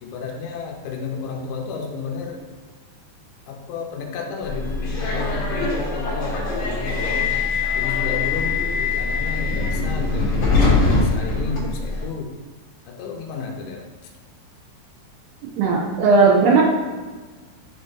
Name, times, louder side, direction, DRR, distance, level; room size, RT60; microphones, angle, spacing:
voice 1, 0.0-2.4 3.5-7.3 7.7-12.3 12.9-13.8, left 5 dB, 80° left, 0 dB, 2.3 m, -31 dB
Subway metro underground, 4.4-12.0, left 3 dB, 60° left, 1.8 m, -22 dB
voice 2, 15.6-16.6, right 4 dB, 80° right, -1 dB, 3.0 m, -16 dB
10.5 x 3.6 x 2.7 m, 1.4 s
omnidirectional pair, 5.4 m